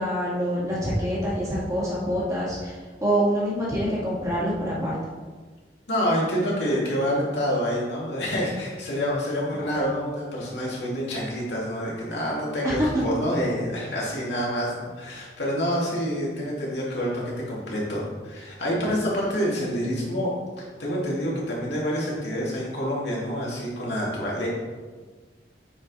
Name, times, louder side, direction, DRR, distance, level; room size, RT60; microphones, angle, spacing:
voice 1, 0.0-2.7 3.0-5.0 9.6-9.7 12.6-13.0, equal, 20° right, -7 dB, 2.6 m, -25 dB
voice 2, 5.9-24.5, equal, 80° left, -5 dB, 2.7 m, -27 dB
9.7 x 5.0 x 4.3 m, 1.4 s
head